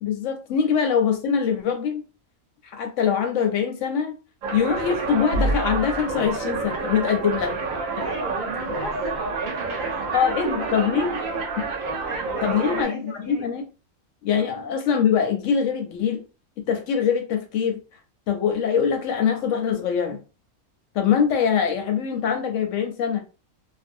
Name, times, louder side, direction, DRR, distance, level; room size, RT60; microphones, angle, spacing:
voice 1, 0.0-2.0 2.6-4.2 4.5-7.6 8.0-8.1 10.1-11.1 11.6-11.7 12.4-13.6 14.2-16.2 16.7-17.8 18.3-20.2 20.9-23.2, left 7 dB, 70° left, 0.8 m, -23 dB
sound 1, 4.4-12.8, right 3 dB, 70° right, 1.0 m, -28 dB
voice 2, 8.0-11.4 11.9-13.5 14.5-14.6, right 3 dB, 85° right, 0.4 m, -36 dB
2.5 x 2.1 x 2.5 m
omnidirectional pair, 1.5 m